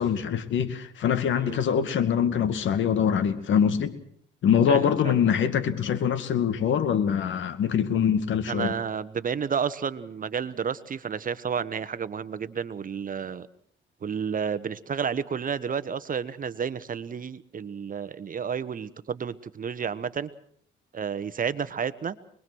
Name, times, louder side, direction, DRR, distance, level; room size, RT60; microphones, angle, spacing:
voice 1, 0.0-4.0 4.4-8.7, left 8 dB, 70° left, 10 dB, 2.3 m, -24 dB
voice 2, 4.7-5.1 8.5-13.5 14.0-20.3 20.9-22.2, right 7 dB, 45° right, 14 dB, 1.2 m, -31 dB
25.0 x 21.5 x 6.3 m, 0.62 s
cardioid pair, 90°, 20 cm